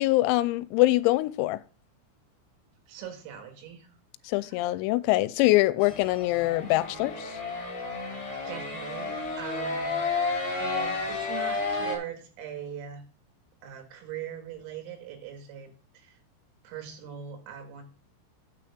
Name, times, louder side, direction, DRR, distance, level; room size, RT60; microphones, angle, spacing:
voice 1, 0.0-1.6 4.3-7.4, left 18 dB, 90° left, 3.3 m, -24 dB
voice 2, 2.9-3.9 4.4-4.6 8.5-10.3 10.6-13.0 13.6-16.1 16.6-17.8, right 9 dB, 80° right, 4.5 m, -41 dB
sound 1, 5.8-12.0, left 3 dB, 25° left, 1.6 m, -32 dB
9.0 x 4.5 x 7.1 m
omnidirectional pair, 6.0 m